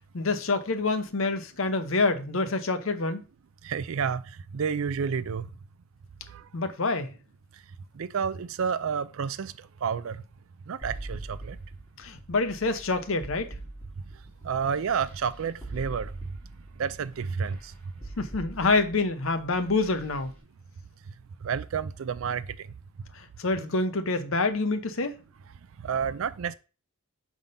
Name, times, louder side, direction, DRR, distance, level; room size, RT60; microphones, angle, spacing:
voice 1, 0.1-3.2 6.5-7.1 12.0-13.5 18.2-20.3 23.1-25.2, left 3 dB, 65° left, 0.8 m, -27 dB
voice 2, 3.6-4.2 4.5-5.5 6.3-6.4 8.0-9.5 9.8-10.2 10.7-11.6 14.4-16.1 16.8-17.7 21.4-22.5 25.8-26.5, right 6 dB, 70° right, 0.4 m, -30 dB
sound 1, 10.8-20.3, right 2 dB, 10° left, 2.9 m, -42 dB
5.1 x 3.7 x 5.5 m
head